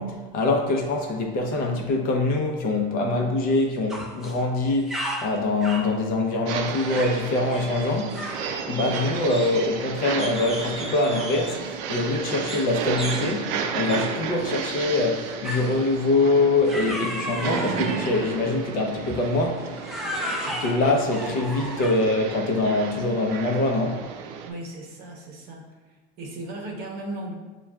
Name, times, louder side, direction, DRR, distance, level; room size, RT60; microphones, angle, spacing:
voice 1, 0.0-8.2 8.7-19.7 20.4-24.0, left 2 dB, 45° left, 1 dB, 0.6 m, -24 dB
sound 1, 3.9-4.4 4.7-5.9 6.8-7.2 7.5-7.7 8.1-8.5 8.9-9.8 10.2-11.6 12.5-12.7 13.0-13.3 13.9-14.1 15.4-15.8 16.7-18.2 19.0-19.3 19.8-22.1, equal, ahead, 0.4 m, -34 dB
sound 2, 6.5-24.5, right 6 dB, 85° right, 0.4 m, -33 dB
voice 2, 24.4-25.7 26.2-27.3, right 1 dB, 55° right, 0 dB, 0.8 m, -36 dB
6.0 x 2.3 x 2.3 m, 1.3 s
cardioid pair, 150°, 20 cm